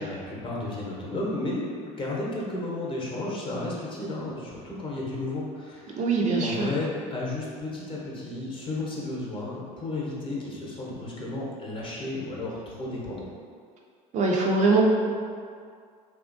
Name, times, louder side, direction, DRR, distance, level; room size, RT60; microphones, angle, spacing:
voice 1, 0.0-6.0 6.4-13.3, left 2 dB, 30° left, -4 dB, 0.8 m, -33 dB
voice 2, 6.0-6.7 14.1-14.8, right 3 dB, 45° right, -1 dB, 0.4 m, -22 dB
2.9 x 2.4 x 2.5 m, 2.1 s
supercardioid pair, 90°, 17 cm